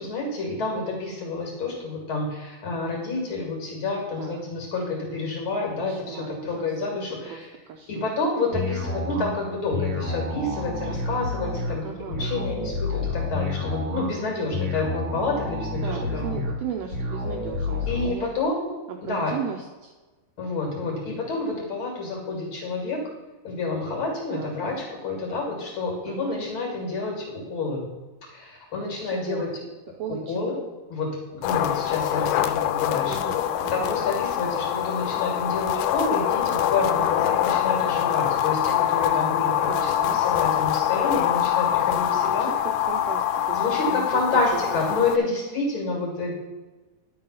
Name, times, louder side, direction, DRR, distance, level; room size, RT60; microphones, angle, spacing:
voice 1, 0.0-7.5 7.9-11.8 12.2-16.4 17.9-18.7 19.0-19.3 20.4-23.0 23.4-24.7 25.0-27.9 28.3-29.5 30.1-30.6 30.9-33.1 33.9-42.5 43.5-46.3, left 3 dB, 45° left, -1 dB, 2.6 m, -29 dB
voice 2, 5.8-6.7 7.3-8.2 11.8-12.5 15.7-18.3 18.9-19.9 24.3-24.5 26.1-26.4 29.0-29.4 30.0-30.6 33.1-34.0 39.7-40.2 42.1-44.6 44.9-45.3, right 7 dB, 90° right, 3 dB, 1.4 m, -36 dB
sound 1, 8.5-18.1, left 2 dB, 40° right, 1.8 m, -29 dB
sound 2, 31.4-45.2, left 11 dB, 85° left, 2.0 m, -24 dB
10.5 x 3.9 x 5.6 m, 1.2 s
omnidirectional pair, 3.7 m